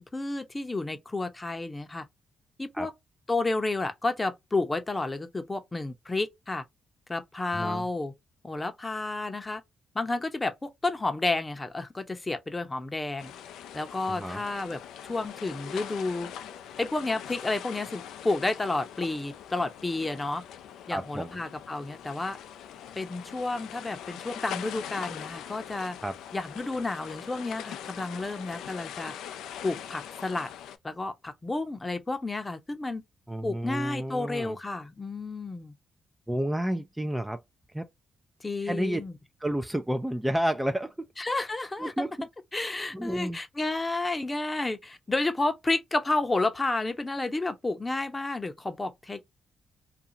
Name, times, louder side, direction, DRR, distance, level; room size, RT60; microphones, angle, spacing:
voice 1, 0.0-2.1 2.6-2.9 3.3-6.6 7.1-8.1 8.4-9.6 9.9-13.3 13.7-16.3 16.8-20.4 20.9-22.4 22.9-26.0 26.3-29.1 29.6-30.5 30.8-33.0 33.4-35.7 38.4-39.2 41.2-42.1 42.5-49.3, left 2 dB, 25° left, 0.7 m, -31 dB
voice 2, 7.5-7.8 14.1-14.4 20.9-21.4 26.0-26.1 33.3-34.6 36.3-37.4 37.7-37.9 38.6-39.0 39.4-40.9 41.8-42.3 42.9-43.4, right 1 dB, 10° right, 0.4 m, -30 dB
sound 1, 13.2-30.8, left 9 dB, 85° left, 0.3 m, -42 dB
2.5 x 2.3 x 2.7 m
supercardioid pair, 60°, 0 cm